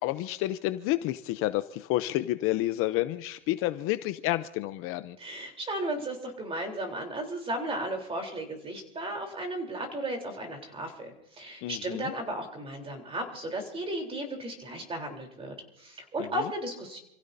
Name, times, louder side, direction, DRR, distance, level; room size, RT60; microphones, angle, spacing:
voice 1, 0.0-5.2 11.6-12.1, left 16 dB, 45° left, 12 dB, 0.7 m, -30 dB
voice 2, 5.2-17.0, right 1 dB, 15° right, 3 dB, 3.7 m, -35 dB
28.5 x 16.0 x 2.7 m, 0.88 s
supercardioid pair, 140°, 32 cm